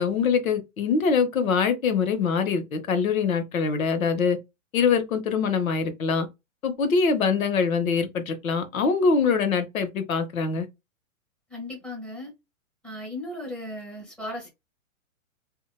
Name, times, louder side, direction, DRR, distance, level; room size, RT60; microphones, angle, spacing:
voice 1, 0.0-4.4 4.7-6.3 6.6-10.7, left 5 dB, 80° left, 0.8 m, -24 dB
voice 2, 11.5-12.3 12.8-14.5, left 1 dB, 5° left, 1.0 m, -36 dB
2.8 x 2.2 x 2.2 m
hypercardioid pair, 125°, 41 cm